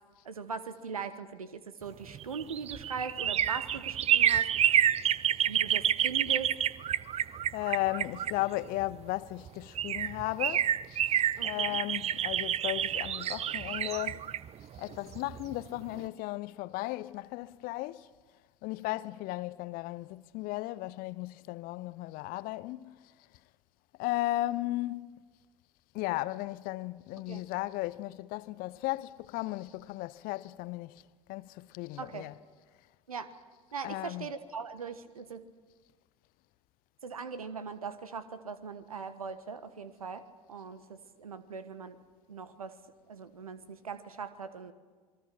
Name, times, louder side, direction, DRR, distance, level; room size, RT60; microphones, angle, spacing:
voice 1, 0.2-4.5 5.5-6.5 11.4-11.8 27.3-27.4 32.0-32.3 33.1-33.3 33.7-35.5 37.0-42.0 42.3-42.8 43.1-44.7, right 5 dB, 85° right, 1.3 m, -40 dB
sound 1, 2.1-8.9 9.5-9.6 9.8-15.5 15.9-16.0, right 10 dB, 35° right, 0.7 m, -29 dB
voice 2, 7.5-14.3 14.7-18.1 18.6-23.1 24.0-25.2 25.9-31.0 31.3-32.4 33.8-34.3, left 18 dB, 55° left, 0.7 m, -35 dB
27.5 x 21.5 x 6.0 m
figure-of-eight pair, 65°, 18 cm